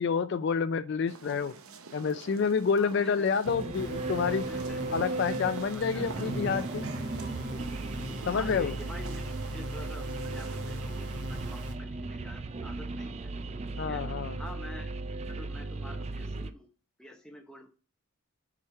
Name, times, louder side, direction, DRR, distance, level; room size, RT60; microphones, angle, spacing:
voice 1, 0.0-1.5 1.9-4.5 4.9-6.9 8.3-8.7 13.8-14.4, left 6 dB, 50° left, 0.3 m, -28 dB
sound 1, 1.1-10.8, right 4 dB, 80° right, 0.7 m, -47 dB
voice 2, 2.8-3.3 4.5-5.0 5.7-6.3 8.0-13.3 13.8-14.0 14.4-14.9 15.3-16.7 17.0-17.7, left 1 dB, 5° left, 0.8 m, -47 dB
sound 2, 3.4-16.5, right 2 dB, 30° right, 0.3 m, -36 dB
sound 3, 3.7-11.7, left 1 dB, 50° right, 0.9 m, -42 dB
5.0 x 4.2 x 5.7 m
head